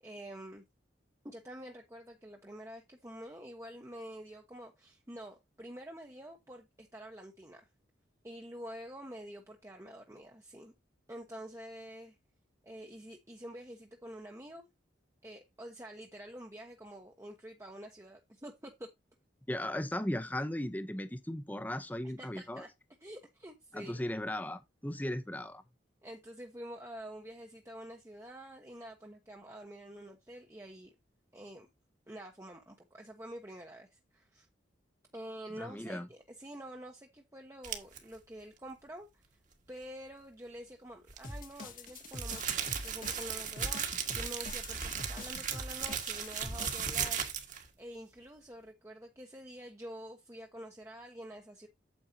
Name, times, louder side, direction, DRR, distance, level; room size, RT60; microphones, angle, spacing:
voice 1, 0.0-0.6 1.2-7.7 8.2-10.7 11.1-12.2 12.6-14.7 15.2-18.9 22.2-22.7 23.0-24.0 26.0-30.9 31.3-31.7 32.1-34.5 35.1-39.3 39.7-43.8 44.1-47.2 47.8-51.7, equal, 15° right, 1.0 m, -47 dB
voice 2, 19.5-22.7 23.7-25.6 35.6-36.1, left 1 dB, 10° left, 0.8 m, -37 dB
sound 1, 37.6-38.0 41.1-47.7, right 7 dB, 45° right, 1.7 m, -36 dB
sound 2, 41.2-46.9, left 2 dB, 45° left, 1.6 m, -45 dB
8.9 x 7.9 x 2.8 m
head